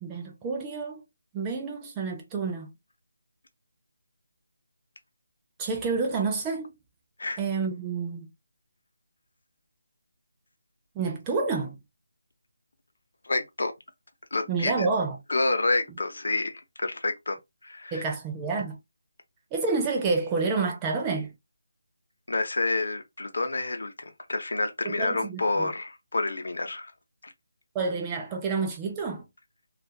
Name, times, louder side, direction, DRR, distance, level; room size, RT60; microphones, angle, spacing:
voice 1, 0.0-1.0 1.3-2.7 5.6-6.7 7.4-8.3 11.0-11.8 14.5-15.2 17.9-18.8 19.5-21.3 24.8-25.7 27.7-29.2, right 4 dB, 10° right, 0.4 m, -29 dB
voice 2, 13.2-13.7 14.3-14.9 15.3-18.0 22.3-26.9 27.2-27.3, left 2 dB, 65° left, 0.7 m, -29 dB
2.3 x 2.2 x 2.7 m
figure-of-eight pair, 175°, 0 cm